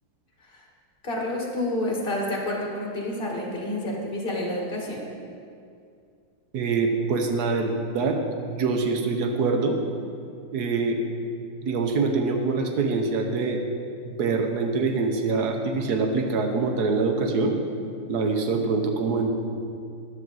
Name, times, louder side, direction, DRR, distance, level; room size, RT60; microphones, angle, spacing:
voice 1, 1.0-5.1, left 1 dB, 25° left, -1 dB, 1.7 m, -29 dB
voice 2, 6.5-8.2 8.5-9.8 10.5-11.1 11.6-13.6 14.0-17.6 18.1-19.3, right 4 dB, 55° right, 4 dB, 1.4 m, -24 dB
12.0 x 10.5 x 4.1 m, 2.4 s
omnidirectional pair, 2.3 m